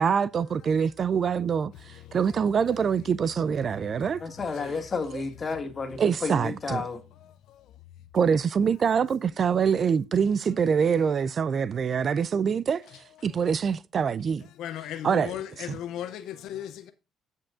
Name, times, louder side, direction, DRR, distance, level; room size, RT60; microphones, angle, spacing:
voice 1, 0.0-4.2 5.1-5.2 6.0-6.9 8.1-14.4 15.0-15.8, right 6 dB, 50° right, 0.4 m, -25 dB
voice 2, 4.2-7.0, left 4 dB, 40° left, 2.0 m, -31 dB
voice 3, 14.6-15.4 15.7-16.9, left 11 dB, 75° left, 0.5 m, -35 dB
16.0 x 5.4 x 2.5 m
supercardioid pair, 75°, 0 cm